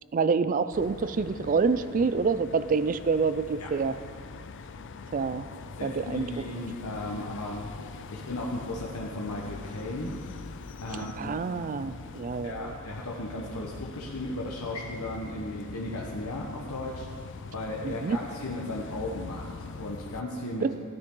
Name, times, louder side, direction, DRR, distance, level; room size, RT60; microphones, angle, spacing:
voice 1, 0.1-3.9 5.1-5.5 5.8-6.2 11.0-12.7 17.8-18.2 20.6-20.7, right 5 dB, 35° right, 13 dB, 0.4 m, -27 dB
sound 1, 0.7-20.2, left 4 dB, 55° left, 0.5 m, -43 dB
voice 2, 5.8-10.2 10.8-11.3 12.4-17.1 17.5-20.7, left 1 dB, 80° left, -2 dB, 1.1 m, -36 dB
15.0 x 10.5 x 3.8 m, 2.3 s
head